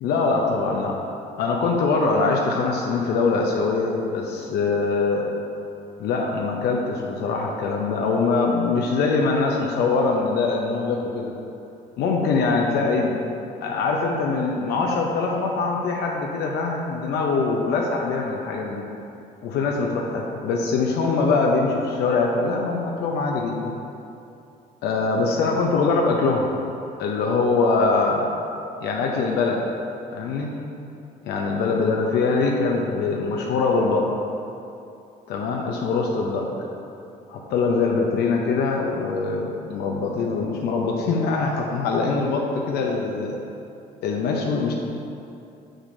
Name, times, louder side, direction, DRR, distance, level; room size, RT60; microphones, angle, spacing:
voice 1, 0.0-1.0 1.4-5.2 6.0-11.3 12.0-13.2 13.6-18.8 19.4-23.7 24.8-26.5 27.0-28.3 28.8-29.6 30.1-30.5 31.2-34.1 35.3-36.5 37.3-43.4 44.0-44.7, left 4 dB, 75° left, 0 dB, 0.6 m, -23 dB
6.4 x 6.2 x 2.6 m, 2.7 s
cardioid pair, 110°, 17 cm